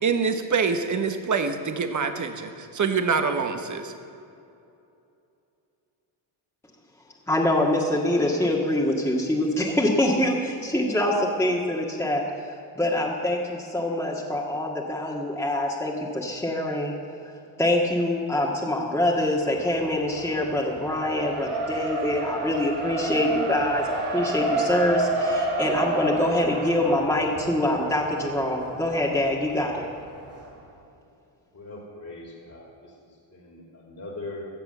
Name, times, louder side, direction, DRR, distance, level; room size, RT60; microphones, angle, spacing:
voice 1, 0.0-3.9, right 5 dB, 35° right, 7 dB, 1.4 m, -25 dB
voice 2, 7.3-16.9 17.6-29.9, left 1 dB, 5° left, -3 dB, 1.9 m, -25 dB
Race car auto racing, 19.4-30.5, right 2 dB, 80° right, 3.4 m, -30 dB
voice 3, 31.5-34.5, left 2 dB, 35° left, -1 dB, 2.7 m, -41 dB
16.5 x 6.9 x 6.9 m, 2.7 s
supercardioid pair, 60°, 49 cm